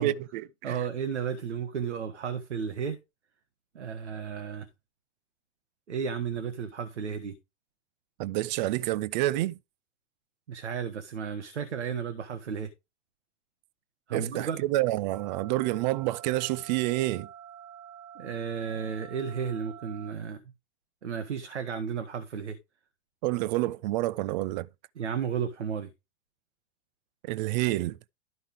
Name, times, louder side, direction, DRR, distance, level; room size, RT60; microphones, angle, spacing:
voice 1, 0.0-0.8 8.2-9.6 14.1-17.3 23.2-24.7 27.2-28.0, right 16 dB, 40° right, 0.6 m, -28 dB
voice 2, 0.6-3.0 3.7-4.7 5.9-7.4 10.5-12.7 14.1-14.6 18.1-20.4 21.0-22.6 25.0-25.9, right 7 dB, 75° right, 1.5 m, -33 dB
sound 1, 15.1-20.1, right 9 dB, 15° right, 1.0 m, -47 dB
12.5 x 5.4 x 3.5 m
hypercardioid pair, 110°, 35 cm